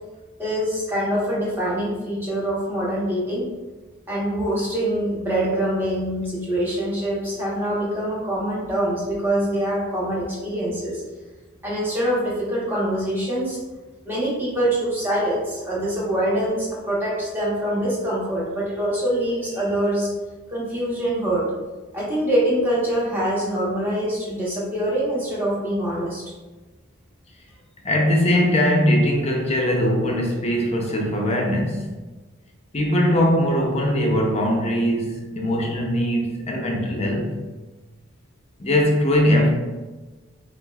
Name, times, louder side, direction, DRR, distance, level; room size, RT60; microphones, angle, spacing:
voice 1, 0.4-3.5 4.1-11.0 11.6-13.6 14.0-20.1 20.5-21.4 21.9-26.2, right 1 dB, 10° right, -8 dB, 1.2 m, -24 dB
voice 2, 27.8-31.9 32.7-37.4 38.6-39.5, equal, 30° left, 1 dB, 0.6 m, -21 dB
7.3 x 2.5 x 2.3 m, 1.2 s
head